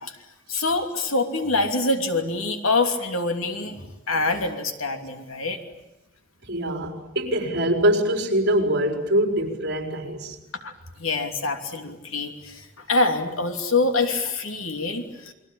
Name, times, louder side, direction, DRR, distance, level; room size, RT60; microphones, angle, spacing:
voice 1, 0.5-5.6 10.6-10.7 11.0-15.3, left 3 dB, 80° left, 5 dB, 3.0 m, -25 dB
voice 2, 6.4-10.4, right 1 dB, 55° right, 3 dB, 4.8 m, -23 dB
29.5 x 22.5 x 8.8 m, 0.94 s
head